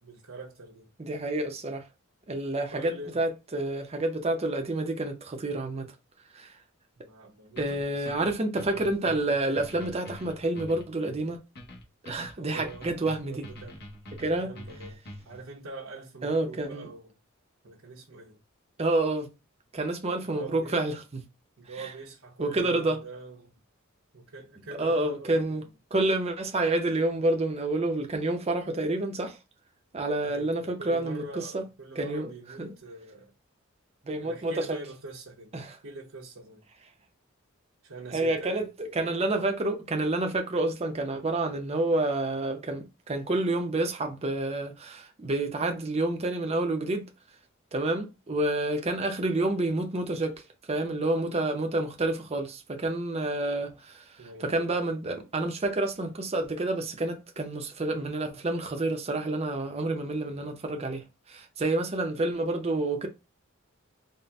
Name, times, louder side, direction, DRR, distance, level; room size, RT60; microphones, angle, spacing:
voice 1, 0.0-0.9 2.7-3.2 7.0-8.2 12.4-12.9 13.3-13.8 14.2-15.0 15.3-17.2 17.6-18.4 20.2-20.8 21.6-23.5 24.1-25.6 30.2-33.3 34.2-35.6 35.8-36.6 37.8-38.6 54.2-54.7, right 2 dB, 80° right, 1.0 m, -44 dB
voice 2, 1.0-1.9 2.3-5.9 6.3-6.5 7.6-11.4 12.0-13.4 14.2-14.5 16.2-16.9 18.8-19.3 19.7-21.2 21.8-21.9 22.4-23.0 24.8-25.6 25.9-29.4 29.9-31.7 32.0-32.3 32.6-32.7 34.1-34.8 35.5-35.8 38.1-47.1 47.7-50.3 50.7-54.1 54.4-63.1, right 2 dB, 30° right, 0.6 m, -29 dB
sound 1, 7.6-15.4, equal, 55° left, 0.9 m, -45 dB
4.0 x 2.1 x 3.4 m
head